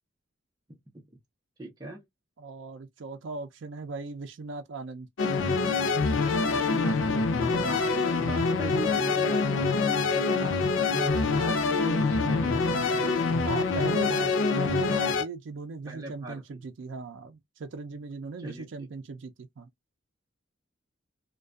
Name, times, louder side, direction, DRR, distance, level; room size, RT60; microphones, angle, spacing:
voice 1, 1.6-2.0 6.4-13.2 15.8-16.6 18.4-18.7, right 1 dB, 20° right, 0.6 m, -39 dB
voice 2, 2.4-5.1 13.4-19.7, right 4 dB, 75° right, 0.4 m, -38 dB
sound 1, 5.2-15.3, left 4 dB, 80° left, 0.4 m, -25 dB
2.4 x 2.2 x 2.3 m
head